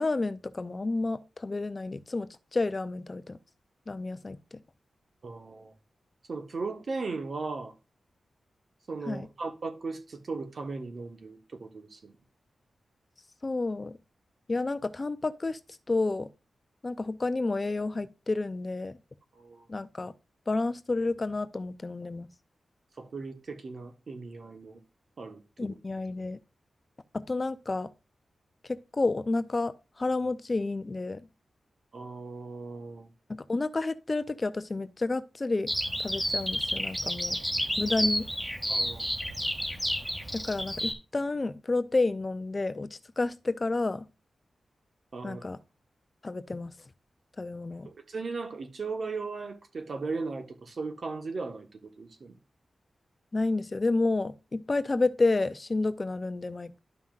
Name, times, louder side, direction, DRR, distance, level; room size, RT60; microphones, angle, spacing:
voice 1, 0.0-3.4 3.9-4.6 9.1-9.3 13.4-14.0 14.5-15.6 15.9-16.3 16.8-19.0 19.7-20.1 20.5-22.3 25.6-26.4 27.1-27.9 28.6-31.3 33.3-35.7 36.0-37.4 37.8-38.3 40.3-44.1 45.2-45.6 46.2-46.7 47.4-47.9 53.3-56.8, left 3 dB, 30° left, 0.5 m, -30 dB
voice 2, 5.2-5.7 6.3-7.7 8.9-12.2 19.3-19.7 23.0-24.8 25.2-25.4 25.7-25.8 31.9-33.1 38.7-39.1 45.1-45.4 47.8-52.4, right 4 dB, 55° right, 1.2 m, -37 dB
Bird vocalization bird call bird song, 35.7-40.9, equal, 10° right, 2.1 m, -30 dB
12.0 x 5.6 x 2.4 m
wide cardioid pair, 100°, 0 cm